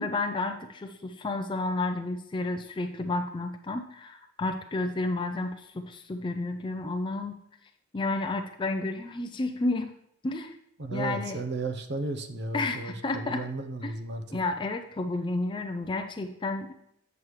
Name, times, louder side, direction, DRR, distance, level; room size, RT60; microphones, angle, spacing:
voice 1, 0.0-7.4 7.9-9.9 10.2-10.6 10.9-11.4 12.5-13.4 13.8-13.9 14.3-16.7, left 2 dB, 25° left, 6 dB, 0.4 m, -31 dB
voice 2, 10.8-14.2, right 2 dB, 55° right, 7 dB, 0.7 m, -34 dB
8.1 x 7.2 x 3.1 m, 0.76 s
head